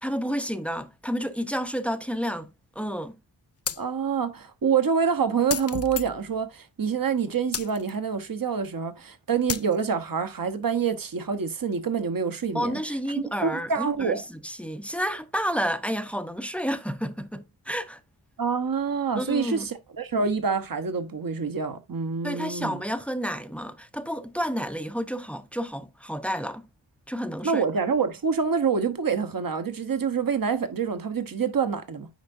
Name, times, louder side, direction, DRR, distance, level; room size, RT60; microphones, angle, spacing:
voice 1, 0.0-2.5 2.8-3.1 12.5-18.0 19.1-19.7 22.2-26.7 27.1-27.6, equal, 5° left, 0.7 m, -30 dB
sound 1, 3.7-3.8 5.5-6.4 7.5-7.9 9.5-9.8, left 8 dB, 35° left, 0.4 m, -32 dB
voice 2, 3.8-12.8 13.4-14.2 18.4-22.8 27.4-32.1, right 6 dB, 45° right, 1.0 m, -26 dB
9.3 x 4.4 x 2.6 m
cardioid pair, 50°, 47 cm